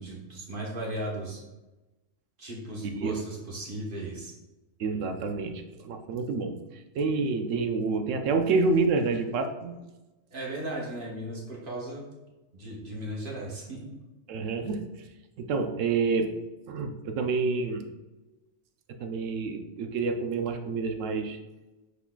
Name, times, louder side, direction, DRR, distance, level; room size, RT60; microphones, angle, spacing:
voice 1, 0.0-1.4 2.4-4.3 10.3-12.0 12.5-13.9, right 1 dB, 45° right, -3 dB, 1.2 m, -36 dB
voice 2, 4.8-9.8 14.3-14.9 15.4-16.4 16.7-17.8 19.0-21.4, right 4 dB, 80° right, 6 dB, 0.9 m, -28 dB
5.7 x 3.9 x 2.3 m, 1.0 s
omnidirectional pair, 1.3 m